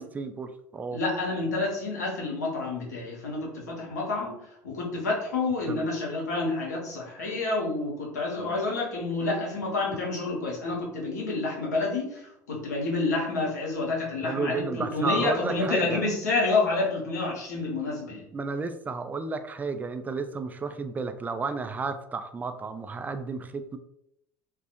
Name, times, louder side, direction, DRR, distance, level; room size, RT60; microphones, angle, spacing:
voice 1, 0.1-1.0 5.7-5.9 14.2-16.0 18.3-23.8, right 4 dB, 20° right, 9 dB, 0.3 m, -32 dB
voice 2, 0.9-4.4 4.6-18.2, left 3 dB, 90° left, -3 dB, 0.8 m, -29 dB
2.4 x 2.2 x 2.8 m, 0.76 s
hypercardioid pair, 75°, 9 cm